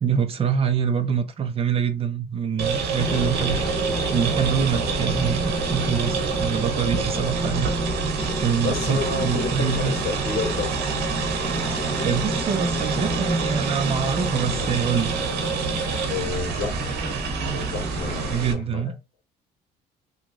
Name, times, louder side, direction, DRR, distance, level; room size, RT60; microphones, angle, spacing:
voice 1, 0.0-3.7 4.1-7.7 8.4-9.9 12.0-15.2 18.3-19.0, right 6 dB, 35° right, 0.7 m, -25 dB
sound 1, 2.6-18.5, right 5 dB, 75° right, 1.0 m, -27 dB
sound 2, 3.0-18.3, left 1 dB, 15° left, 1.4 m, -32 dB
voice 2, 8.6-10.7 16.1-18.9, left 4 dB, 70° left, 1.6 m, -31 dB
3.0 x 2.5 x 3.6 m
cardioid pair, 110°, 17 cm